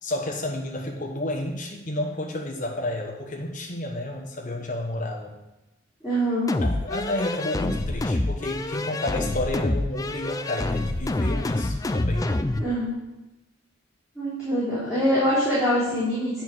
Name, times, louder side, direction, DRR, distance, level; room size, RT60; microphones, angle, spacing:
voice 1, 0.0-5.3 6.6-12.3, left 1 dB, 40° left, 0 dB, 1.1 m, -30 dB
voice 2, 6.0-6.5 12.6-12.9 14.1-16.4, equal, 5° right, -13 dB, 3.2 m, -24 dB
sound 1, 6.5-12.7, left 2 dB, 15° left, 0.3 m, -27 dB
8.9 x 4.6 x 6.2 m, 0.97 s
head